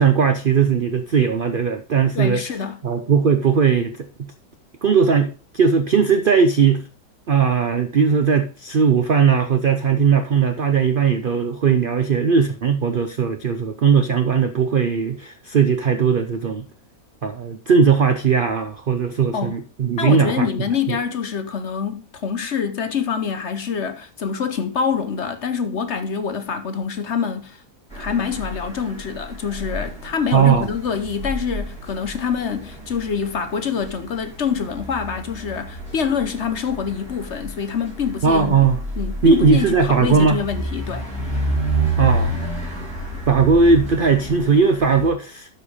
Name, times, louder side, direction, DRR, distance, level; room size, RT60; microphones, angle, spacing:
voice 1, 0.0-2.4 2.8-4.3 4.8-6.9 7.3-16.7 17.2-20.5 20.9-21.0 30.3-30.7 38.2-38.8 39.2-40.4 42.0-42.3 43.3-45.5, right 5 dB, 80° right, 0.4 m, -18 dB
voice 2, 2.1-2.8 19.3-19.6 20.0-27.6 27.9-38.7 39.0-41.1, left 6 dB, 50° left, 0.9 m, -25 dB
sound 1, 27.9-45.1, right 2 dB, 5° left, 5.7 m, -30 dB
12.0 x 4.5 x 4.9 m
omnidirectional pair, 1.8 m